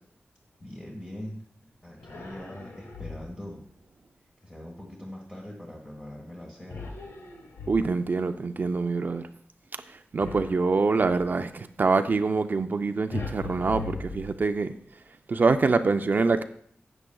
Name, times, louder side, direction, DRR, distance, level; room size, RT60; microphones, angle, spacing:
voice 1, 0.6-1.4 1.8-3.6 4.4-6.9, left 1 dB, 15° left, 1.4 m, -42 dB
sound 1, 2.0-3.5 6.7-8.2 10.2-11.4 13.1-14.8, left 4 dB, 90° left, 1.3 m, -39 dB
voice 2, 7.7-9.3 10.1-14.7 15.3-16.4, right 4 dB, 45° right, 0.4 m, -25 dB
13.0 x 8.9 x 2.3 m
wide cardioid pair, 135°, 4 cm